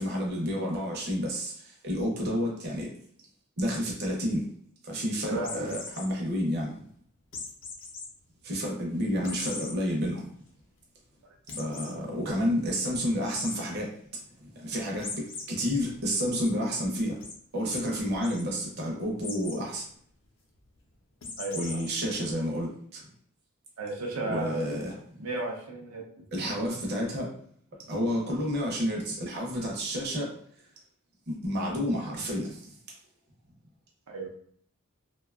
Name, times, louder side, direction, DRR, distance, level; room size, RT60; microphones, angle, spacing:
voice 1, 0.0-1.5 1.8-2.9 3.6-4.5 4.9-6.7 8.4-10.2 11.6-13.9 14.6-17.1 17.5-19.8 21.5-23.0 24.2-25.0 26.3-27.3 27.9-30.3 31.3-32.6, equal, 50° right, -2 dB, 0.6 m, -30 dB
voice 2, 5.3-5.7 21.4-21.8 23.8-24.7 25.2-26.0 34.1-34.3, right 2 dB, 90° right, 0 dB, 0.5 m, -34 dB
sound 1, 5.4-6.1 7.3-8.1 8.5-8.6 9.2-9.7 10.2-10.3 10.6-10.7 11.5-11.9 13.3-13.6 15.0-15.4 15.9-16.5 17.2-17.3 17.7-17.8 18.1-18.4 19.2-19.6 21.2-21.9, left 4 dB, 60° left, 0.5 m, -39 dB
2.6 x 2.2 x 2.4 m, 0.63 s
head